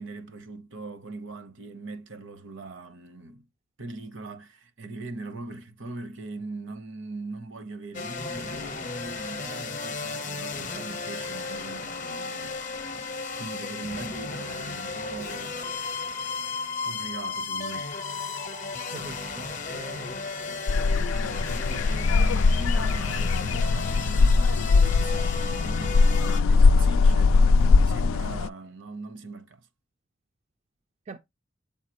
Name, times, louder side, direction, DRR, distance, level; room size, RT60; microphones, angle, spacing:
voice 1, 0.0-3.5 3.8-12.6 13.4-15.6 16.4-16.5 16.8-17.9 18.9-19.1 20.4-29.6, right 3 dB, 70° right, 0.9 m, -40 dB
sound 1, 7.9-26.4, left 4 dB, 40° left, 0.7 m, -34 dB
voice 2, 18.9-20.2 31.1-31.2, right 2 dB, 35° right, 0.4 m, -42 dB
sound 2, 20.7-28.5, left 4 dB, 85° left, 0.3 m, -21 dB
7.2 x 4.7 x 2.9 m
head